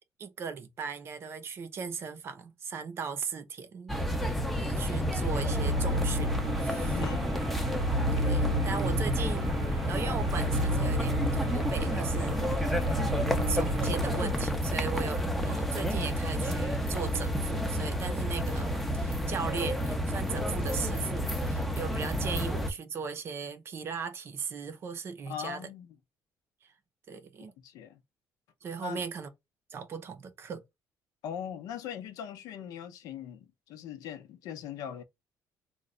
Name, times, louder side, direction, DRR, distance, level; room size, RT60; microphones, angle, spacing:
voice 1, 0.2-3.9 4.3-6.3 6.6-6.9 8.1-25.6 26.6-26.7 27.1-27.5 28.6-29.3 29.7-30.6, right 6 dB, 40° right, 0.6 m, -38 dB
sound 1, 3.9-22.7, equal, ahead, 0.5 m, -30 dB
voice 2, 4.6-5.3 6.8-7.3 25.3-26.0 27.6-28.0 28.8-29.0 31.2-35.0, left 9 dB, 85° left, 0.6 m, -40 dB
sound 2, 5.0-14.4, equal, 80° right, 0.7 m, -33 dB
3.1 x 2.2 x 3.7 m
cardioid pair, 145°, 6 cm